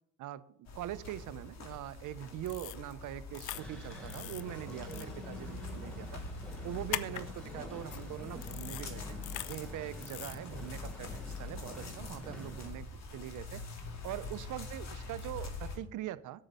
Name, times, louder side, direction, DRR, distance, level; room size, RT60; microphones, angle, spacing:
voice 1, 0.2-6.2 6.6-9.2 9.5-13.6 14.0-16.4, right 13 dB, 80° right, 17 dB, 0.6 m, -42 dB
sound 1, 0.7-15.8, left 3 dB, 60° left, 2.2 m, -45 dB
sound 2, 2.5-2.8 3.3-3.6 4.1-4.4 4.9-5.1 6.9-7.2 7.9-8.0 8.4-8.8 9.2-9.6 10.0-10.4, left 14 dB, 80° left, 0.6 m, -40 dB
sound 3, 3.5-12.7, left 1 dB, 5° left, 3.3 m, -47 dB
8.1 x 6.5 x 7.9 m, 0.79 s
cardioid pair, 90°, 30 cm